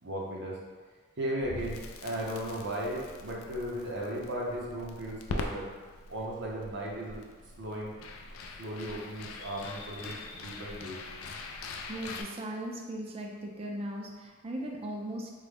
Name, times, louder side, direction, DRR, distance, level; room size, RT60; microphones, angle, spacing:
voice 1, 0.0-0.6 1.2-5.7 6.1-7.2 7.6-7.9 8.6-11.0, right 1 dB, 55° right, -3 dB, 0.7 m, -36 dB
Crackle, 1.4-12.2, left 3 dB, 70° left, 0.3 m, -43 dB
voice 2, 11.9-15.3, right 1 dB, 30° right, 1 dB, 0.4 m, -38 dB
3.5 x 2.1 x 3.3 m, 1.4 s
head